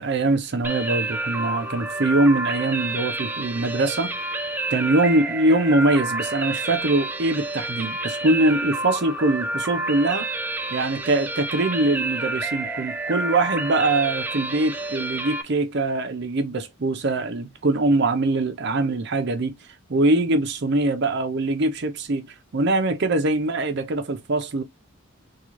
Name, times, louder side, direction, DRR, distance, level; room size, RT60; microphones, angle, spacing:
voice 1, 0.0-4.2 4.7-10.3 10.7-19.6 19.9-24.6, right 2 dB, 55° right, 0.6 m, -23 dB
sound 1, 0.6-15.4, right 2 dB, 10° right, 0.3 m, -29 dB
3.7 x 2.3 x 3.1 m
head